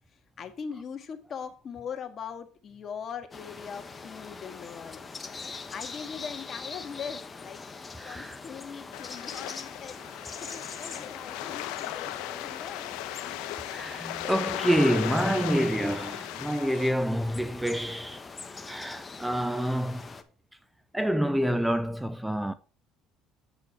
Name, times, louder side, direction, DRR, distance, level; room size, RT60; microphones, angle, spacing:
voice 1, 0.1-7.6 8.0-10.0 10.4-13.0, left 7 dB, 40° left, 1.7 m, -41 dB
sound 1, 3.3-20.2, left 4 dB, 25° left, 1.1 m, -43 dB
voice 2, 8.0-8.4 13.6-18.3 18.5-20.0 20.9-22.5, equal, 5° right, 0.5 m, -27 dB
sound 2, 8.9-16.9, left 14 dB, 85° left, 0.9 m, -37 dB
8.2 x 8.0 x 4.6 m
supercardioid pair, 105°, 0 cm